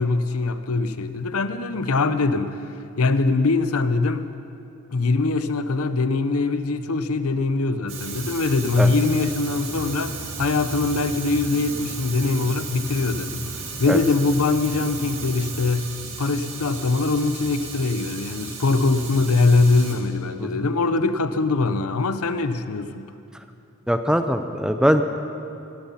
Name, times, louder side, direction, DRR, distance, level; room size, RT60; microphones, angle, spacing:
voice 1, 0.0-2.6 3.0-4.3 4.9-13.4 13.8-15.9 16.2-23.1, left 3 dB, 85° left, 11 dB, 0.7 m, -22 dB
Fire, 7.9-20.0, right 4 dB, 60° right, 2.4 m, -34 dB
voice 2, 23.9-25.0, equal, 5° right, 8 dB, 0.5 m, -21 dB
18.5 x 13.0 x 5.7 m, 2.6 s
head